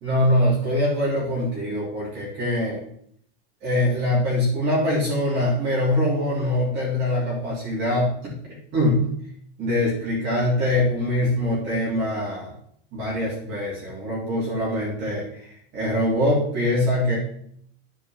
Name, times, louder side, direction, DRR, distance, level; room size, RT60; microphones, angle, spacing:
voice 1, 0.0-2.8 3.6-8.3 8.7-9.1 9.6-12.5 12.9-17.2, left 1 dB, 30° right, -6 dB, 3.3 m, -23 dB
10.0 x 4.7 x 6.0 m, 0.66 s
supercardioid pair, 180°, 34 cm